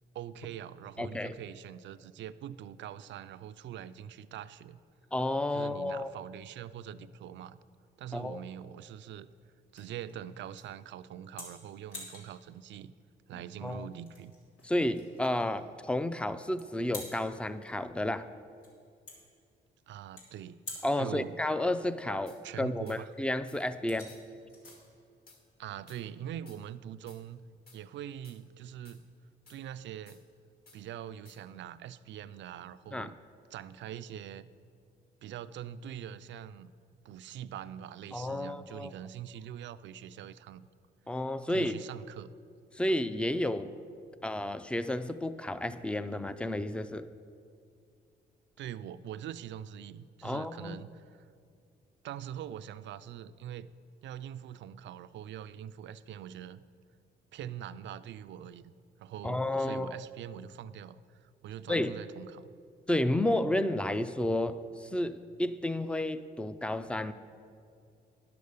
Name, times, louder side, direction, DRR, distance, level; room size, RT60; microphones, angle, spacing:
voice 1, 0.1-4.8 5.5-7.6 8.0-9.3 9.7-12.9 13.3-14.3 19.9-20.6 21.0-21.3 22.4-23.1 25.6-27.4 27.7-29.1 29.5-30.2 30.7-33.2 33.5-34.5 35.2-36.7 37.0-40.7 41.5-42.3 48.6-51.3 52.0-53.7 54.0-56.6 57.3-58.7 59.0-62.5, right 10 dB, 65° right, 14 dB, 0.4 m, -43 dB
voice 2, 1.0-1.3 5.1-6.1 8.1-8.4 13.6-13.9 14.6-18.3 20.8-24.1 32.9-33.1 38.1-38.9 41.1-41.8 42.7-43.7 44.2-47.1 50.2-50.8 59.2-60.0 61.7-61.9 62.9-67.1, left 1 dB, 5° left, 13 dB, 0.4 m, -31 dB
sound 1, 7.5-26.3, left 2 dB, 90° left, 2.9 m, -52 dB
sound 2, 22.3-22.4 22.9-23.0 23.5-23.6 24.1-24.2 24.7-24.8 25.3-25.4 25.9-26.0 26.5-26.6 27.1-27.2 27.7-27.8 28.2-28.4 28.8-29.0 29.5-29.6 30.1-30.2 30.7-30.8 31.2-31.4, left 3 dB, 50° left, 1.7 m, -57 dB
10.5 x 6.8 x 6.6 m, 2.4 s
cardioid pair, 90°, 20 cm